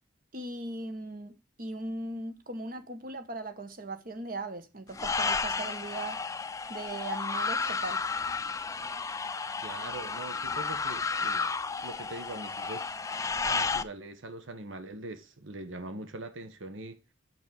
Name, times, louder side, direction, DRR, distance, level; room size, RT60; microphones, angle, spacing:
voice 1, 0.3-1.3 1.6-6.2 6.7-8.0, right 2 dB, 45° right, 1.3 m, -38 dB
sound 1, 4.9-13.8, left 4 dB, 15° left, 0.4 m, -32 dB
voice 2, 9.6-11.5 11.8-12.9 13.4-17.0, right 2 dB, 85° right, 1.2 m, -42 dB
6.3 x 6.2 x 7.0 m
head